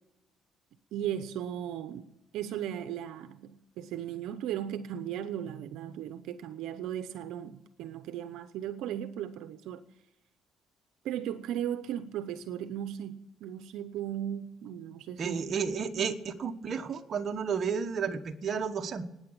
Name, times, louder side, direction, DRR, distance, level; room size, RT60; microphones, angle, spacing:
voice 1, 0.9-2.1 2.3-9.8 11.0-15.5 16.0-16.1, right 10 dB, 85° right, 0.8 m, -36 dB
voice 2, 15.2-19.1, right 6 dB, 50° right, 1.3 m, -32 dB
14.0 x 9.9 x 8.8 m
cardioid pair, 95°, 0 cm